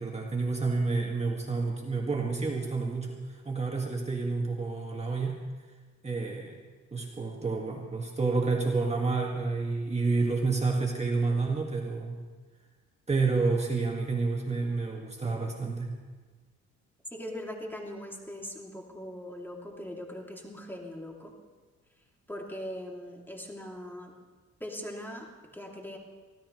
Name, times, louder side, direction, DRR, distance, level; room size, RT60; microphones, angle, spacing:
voice 1, 0.0-5.4 6.0-6.6 6.9-12.2 13.1-15.9, right 3 dB, 20° right, -1 dB, 1.8 m, -29 dB
voice 2, 17.1-21.3 22.3-24.1 24.6-26.0, left 1 dB, 5° left, -1 dB, 2.7 m, -40 dB
24.5 x 16.0 x 3.2 m, 1.4 s
cardioid pair, 90°, 30 cm